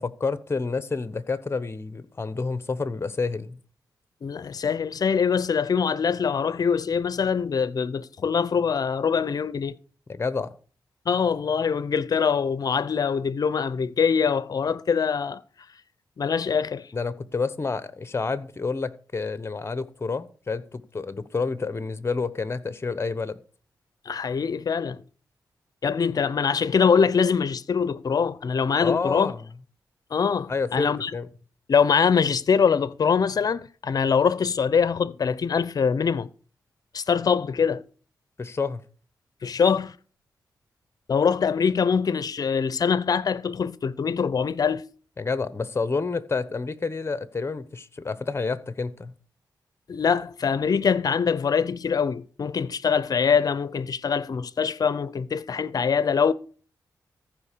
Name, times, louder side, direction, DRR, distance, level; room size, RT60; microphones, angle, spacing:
voice 1, 0.0-3.6 10.1-10.5 16.9-23.4 28.8-29.4 30.5-31.3 38.4-38.8 45.2-49.1, left 4 dB, 35° left, 1.0 m, -29 dB
voice 2, 4.2-9.8 11.1-15.4 16.2-16.9 24.1-25.0 25.8-29.3 30.1-31.1 31.7-36.3 36.9-37.8 39.4-39.9 41.1-44.8 49.9-56.3, left 6 dB, 60° left, 0.6 m, -23 dB
14.5 x 5.1 x 6.7 m
cardioid pair, 70°, 7 cm